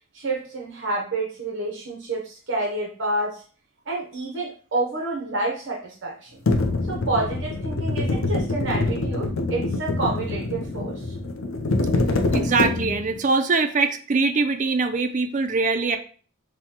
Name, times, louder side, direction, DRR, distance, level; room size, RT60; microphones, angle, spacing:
voice 1, 0.1-3.4 3.9-6.4 6.9-11.1, right 2 dB, 60° right, -1 dB, 0.8 m, -29 dB
sound 1, 6.5-13.2, left 2 dB, 75° left, 0.6 m, -25 dB
voice 2, 12.3-16.0, right 4 dB, 35° right, 6 dB, 0.4 m, -22 dB
5.9 x 2.2 x 2.9 m, 0.41 s
head